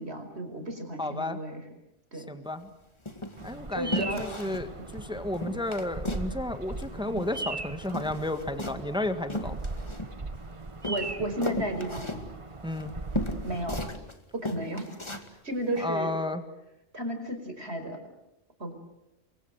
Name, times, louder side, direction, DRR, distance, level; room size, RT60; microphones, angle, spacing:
voice 1, 0.0-1.6 2.1-2.3 3.7-4.2 5.0-5.2 10.8-12.2 13.4-13.9 14.3-14.9 15.4-16.1 16.9-18.0 18.6-18.7, right 1 dB, 60° right, 6 dB, 5.2 m, -33 dB
voice 2, 1.0-1.4 2.1-2.7 3.4-9.6 12.6-12.9 15.8-16.4, left 1 dB, 5° right, 8 dB, 1.6 m, -32 dB
sound 1, 2.4-2.7 3.1-3.5 3.9-4.7 5.0-5.1 5.3-6.3 6.6-7.6 7.8-10.4 10.8-14.1 14.4-15.3 15.7-15.8, left 1 dB, 25° left, 2.3 m, -36 dB
Bird vocalization bird call bird song, 3.4-13.9, right 3 dB, 25° right, 1.2 m, -39 dB
30.0 x 23.5 x 7.9 m, 0.88 s
omnidirectional pair, 1.2 m